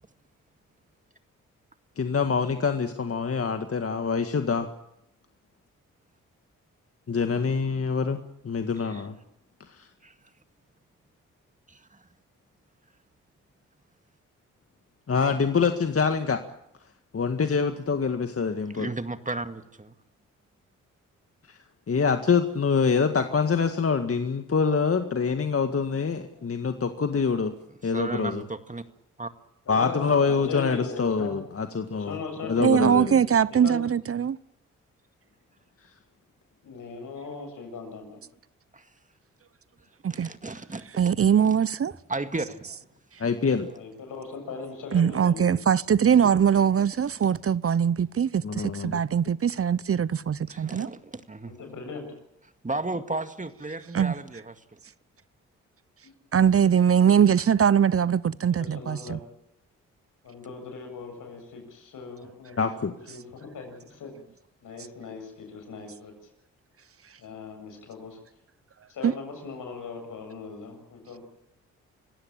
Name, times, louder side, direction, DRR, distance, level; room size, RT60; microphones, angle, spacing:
voice 1, 2.0-4.7 7.1-8.2 8.4-9.2 9.7-9.9 15.1-16.4 17.1-18.9 21.5-21.6 21.9-27.5 27.8-28.4 29.7-32.2 32.4-33.2 43.2-43.7 48.4-49.0 62.6-62.9, left 5 dB, 45° left, 1.9 m, -25 dB
voice 2, 11.7-12.0 18.7-20.0 27.9-28.8 29.2-29.3 38.7-38.9 40.1-40.8 41.4-41.5 42.1-42.8 50.5-51.6 52.6-54.8, right 2 dB, 25° right, 2.1 m, -34 dB
voice 3, 29.7-31.3 31.9-33.9 36.6-38.2 43.7-45.5 51.5-52.2 56.0-56.1 58.5-59.2 60.2-64.1 64.6-66.1 67.2-68.2 68.9-71.2, left 4 dB, 75° left, 7.5 m, -39 dB
voice 4, 32.6-34.4 40.0-40.3 41.0-41.9 44.9-50.9 53.9-54.1 56.3-59.2 69.0-69.1, right 8 dB, 45° right, 0.8 m, -22 dB
25.5 x 16.0 x 8.9 m
supercardioid pair, 50°, 32 cm